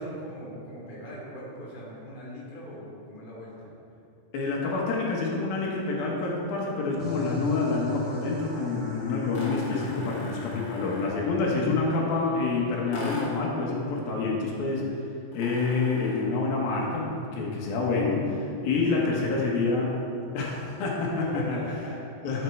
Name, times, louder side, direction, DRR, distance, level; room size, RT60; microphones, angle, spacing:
voice 1, 0.0-3.7 18.7-19.2 21.1-22.1, equal, 15° left, -6 dB, 2.2 m, -41 dB
voice 2, 4.3-14.9 15.3-20.0 20.3-21.6 22.2-22.4, left 3 dB, 80° left, -3 dB, 3.2 m, -27 dB
sound 1, 7.0-13.2, equal, 70° right, 0.6 m, -40 dB
sound 2, 9.3-11.3 12.9-13.5 15.3-16.4, left 1 dB, 45° left, 3.0 m, -41 dB
12.5 x 7.6 x 4.6 m, 2.6 s
omnidirectional pair, 4.2 m